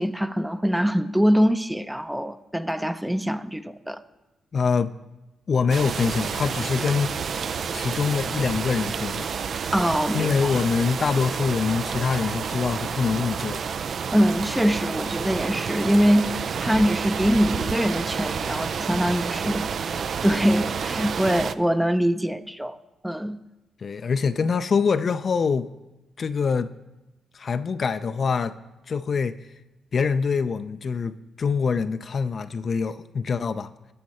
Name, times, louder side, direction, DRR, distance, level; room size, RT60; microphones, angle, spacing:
voice 1, 0.0-4.0 9.7-10.6 14.1-19.7 20.2-22.8 23.0-23.4, equal, 5° right, 0.5 m, -23 dB
voice 2, 4.5-4.9 5.5-7.2 7.7-9.3 10.1-13.7 23.8-25.7 26.2-26.7 27.3-28.6 28.9-29.3 29.9-33.7, left 5 dB, 55° left, 0.4 m, -24 dB
sound 1, 5.7-21.5, right 6 dB, 60° right, 0.3 m, -29 dB
12.0 x 6.5 x 4.2 m
supercardioid pair, 60°, 0 cm